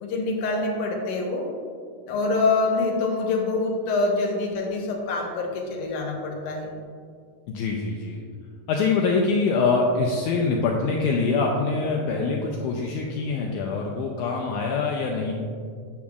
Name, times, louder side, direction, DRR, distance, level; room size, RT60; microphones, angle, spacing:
voice 1, 0.0-1.5 2.1-6.7, left 3 dB, 70° left, 0 dB, 2.2 m, -25 dB
voice 2, 7.5-8.2 8.7-15.3, left 4 dB, 90° left, 0 dB, 1.8 m, -24 dB
8.6 x 7.3 x 2.3 m, 2.2 s
omnidirectional pair, 4.1 m